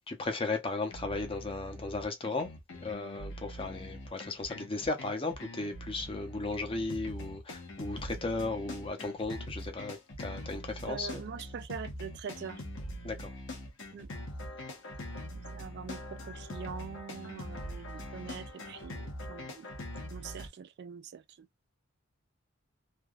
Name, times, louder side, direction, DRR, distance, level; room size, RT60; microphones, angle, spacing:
voice 1, 0.1-11.2 13.0-13.3, left 3 dB, 25° left, 0.7 m, -36 dB
sound 1, 0.9-20.5, left 1 dB, 65° left, 1.0 m, -43 dB
voice 2, 10.8-12.6 13.9-14.1 15.3-19.7 20.1-21.5, right 6 dB, 55° right, 0.3 m, -43 dB
3.3 x 2.2 x 2.3 m
head